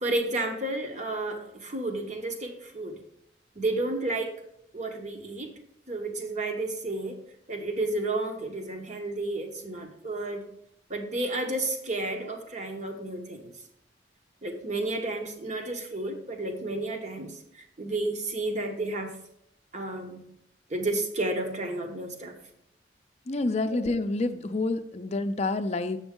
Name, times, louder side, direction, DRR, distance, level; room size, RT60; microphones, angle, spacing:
voice 1, 0.0-3.0 3.6-4.3 4.7-5.6 5.9-7.2 7.5-10.4 10.9-13.5 14.4-19.1 19.7-20.2 20.7-22.3 23.6-23.8, right 2 dB, 40° right, 4 dB, 1.0 m, -31 dB
voice 2, 23.3-26.0, left 2 dB, 35° left, 8 dB, 0.5 m, -28 dB
8.0 x 6.1 x 3.7 m, 0.75 s
head